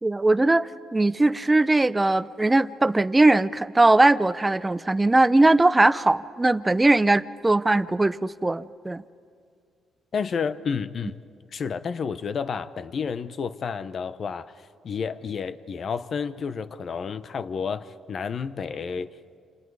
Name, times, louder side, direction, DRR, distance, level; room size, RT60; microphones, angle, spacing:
voice 1, 0.0-9.0, right 2 dB, 15° right, 16 dB, 0.6 m, -20 dB
voice 2, 10.1-11.2 11.5-14.5 14.8-19.1, left 6 dB, 50° left, 12 dB, 0.8 m, -30 dB
28.0 x 28.0 x 4.8 m, 2.3 s
cardioid pair, 90°, 0 cm